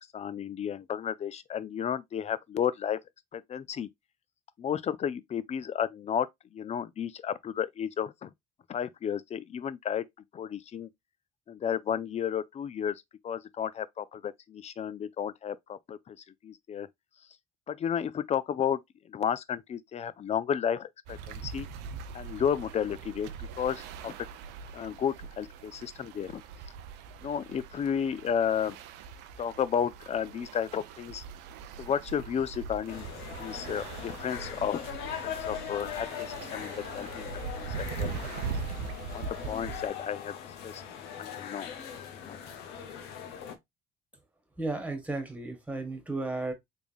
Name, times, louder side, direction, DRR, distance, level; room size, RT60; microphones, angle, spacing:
voice 1, 0.1-3.0 3.3-3.9 4.6-6.3 6.5-8.3 8.7-10.0 10.3-10.9 11.5-13.0 13.2-16.2 16.4-16.9 17.7-18.8 19.1-21.7 22.1-24.1 24.7-26.4 27.2-28.8 29.4-31.2 31.8-33.1 33.4-34.8 35.2-38.3 39.1-40.3 40.6-40.8 41.2-41.7 42.2-42.4, left 8 dB, 40° left, 0.4 m, -32 dB
sound 1, 21.1-39.9, right 6 dB, 80° right, 0.5 m, -41 dB
sound 2, 32.9-43.6, left 8 dB, 80° left, 0.7 m, -40 dB
voice 2, 44.6-46.5, right 2 dB, 10° right, 1.5 m, -34 dB
3.5 x 3.4 x 2.4 m
supercardioid pair, 70°, 17 cm